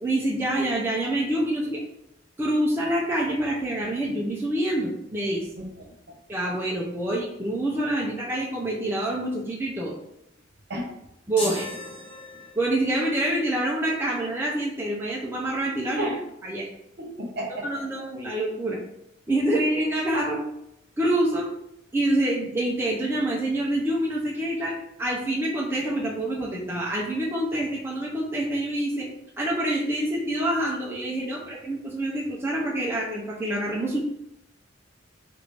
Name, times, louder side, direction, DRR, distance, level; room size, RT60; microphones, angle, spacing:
voice 1, 0.0-1.8 2.4-5.5 6.3-9.9 11.3-11.7 12.6-16.1 16.4-16.7 17.6-18.8 19.3-20.4 21.0-21.6 21.9-29.1 29.4-34.0, right 1 dB, 10° right, -4 dB, 0.5 m, -26 dB
voice 2, 5.6-6.2 10.7-10.9 16.0-16.2 17.0-17.7 31.3-31.5, right 1 dB, 60° right, -1 dB, 0.9 m, -33 dB
sound 1, 11.4-12.9, equal, 30° left, 1.2 m, -35 dB
3.5 x 2.5 x 3.2 m, 0.80 s
head